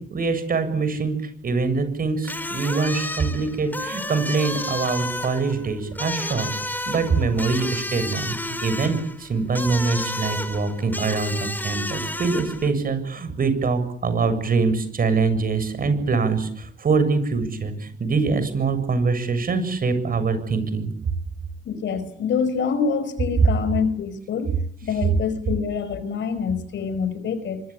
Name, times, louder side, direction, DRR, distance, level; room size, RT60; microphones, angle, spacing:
voice 1, 0.0-6.5 6.9-20.9, right 4 dB, 45° right, 11 dB, 7.4 m, -24 dB
sound 1, 2.2-12.7, left 1 dB, 10° left, 3.6 m, -31 dB
voice 2, 21.6-27.6, left 6 dB, 65° left, 13 dB, 5.0 m, -26 dB
25.0 x 24.0 x 8.7 m, 0.63 s
cardioid pair, 90°, 20 cm